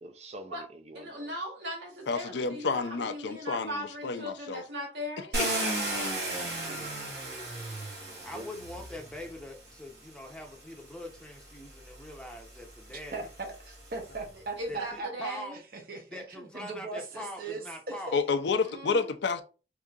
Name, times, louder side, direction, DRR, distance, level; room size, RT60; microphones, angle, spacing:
voice 1, 0.0-1.3 6.2-7.1 8.3-8.5, right 1 dB, 35° right, 0.5 m, -46 dB
voice 2, 0.9-5.3 14.6-15.5 18.6-19.1, equal, 90° right, 1.5 m, -38 dB
voice 3, 2.1-4.6 5.4-5.7 18.1-19.4, left 4 dB, 85° left, 0.5 m, -30 dB
Car, 5.3-9.4 10.4-10.5 11.0-14.3, right 1 dB, 70° right, 1.7 m, -35 dB
voice 4, 8.2-13.3 14.7-15.6 16.1-18.2, left 1 dB, 5° left, 0.7 m, -43 dB
voice 5, 13.1-15.4 15.7-17.6 17.9-18.2, right 3 dB, 55° right, 0.8 m, -39 dB
4.7 x 2.7 x 2.4 m
head